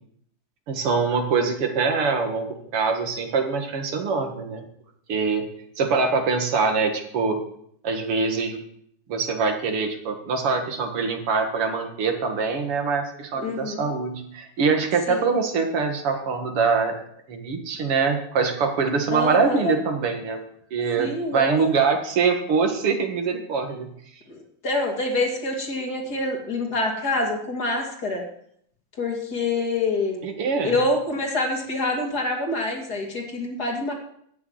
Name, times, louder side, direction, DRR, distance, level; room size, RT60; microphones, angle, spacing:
voice 1, 0.7-4.6 5.1-5.4 5.8-7.4 7.8-8.6 9.1-16.9 17.3-20.4 20.7-23.9 30.2-30.8, right 5 dB, 85° right, 4 dB, 2.8 m, -24 dB
voice 2, 13.4-13.9 15.1-15.3 19.1-19.7 21.0-21.6 24.3-28.2 29.0-30.3 30.6-33.9, left 2 dB, 45° left, 1 dB, 3.0 m, -26 dB
14.0 x 6.5 x 9.5 m, 0.67 s
omnidirectional pair, 2.4 m